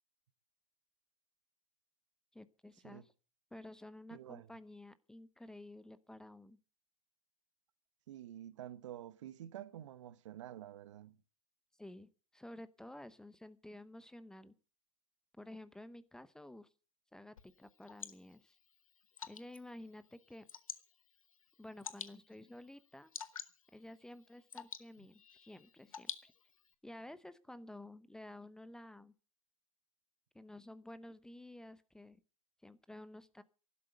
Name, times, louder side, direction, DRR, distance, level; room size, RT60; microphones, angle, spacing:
voice 1, 2.3-3.1 3.5-6.6 11.8-14.5 15.4-16.7 17.1-18.6 19.3-20.5 21.6-23.1 23.7-26.3 26.8-29.1 30.3-32.2 32.6-33.4, left 1 dB, 5° left, 0.8 m, -52 dB
voice 2, 4.1-4.5 8.1-11.2, right 12 dB, 65° right, 1.2 m, -49 dB
Water / Drip, 17.4-26.7, left 7 dB, 85° left, 1.5 m, -51 dB
12.5 x 12.0 x 7.9 m
hypercardioid pair, 115°, 17 cm